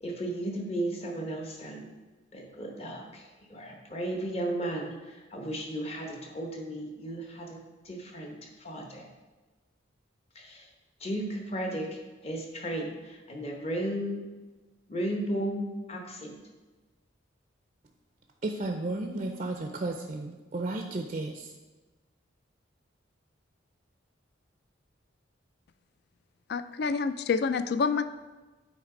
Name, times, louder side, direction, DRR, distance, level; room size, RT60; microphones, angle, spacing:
voice 1, 0.0-1.9 2.3-7.6 7.8-9.1 10.3-10.7 11.0-14.2 14.9-16.3, right 1 dB, 30° left, 1 dB, 1.0 m, -35 dB
voice 2, 18.4-21.5, right 2 dB, 35° right, 3 dB, 0.4 m, -33 dB
voice 3, 26.5-28.0, left 5 dB, 55° left, 12 dB, 0.3 m, -27 dB
8.4 x 3.2 x 4.9 m, 1.2 s
head